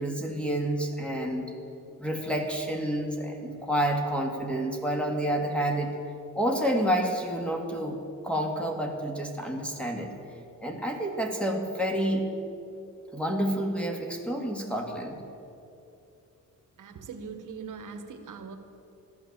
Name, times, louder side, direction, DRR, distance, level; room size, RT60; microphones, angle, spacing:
voice 1, 0.0-1.5 2.0-5.9 6.4-8.0 8.2-10.1 10.6-12.3 13.1-15.2, right 1 dB, 5° left, 2 dB, 2.1 m, -29 dB
voice 2, 16.8-18.6, right 5 dB, 70° right, 6 dB, 1.3 m, -41 dB
15.0 x 12.5 x 7.3 m, 2.7 s
cardioid pair, 115°, 33 cm